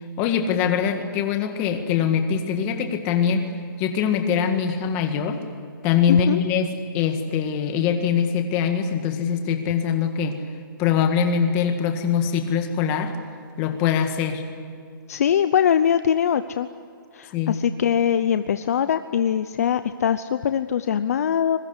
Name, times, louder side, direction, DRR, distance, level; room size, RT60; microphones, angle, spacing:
voice 1, 0.2-3.5 3.8-5.4 5.8-6.7 6.9-10.4 10.8-13.2 13.6-14.4 17.3-17.6, left 7 dB, 20° left, 6 dB, 1.8 m, -23 dB
voice 2, 6.1-6.4 15.1-16.7 17.1-21.6, left 8 dB, 45° left, 11 dB, 0.7 m, -22 dB
26.0 x 22.5 x 8.3 m, 2.3 s
hypercardioid pair, 175°, 12 cm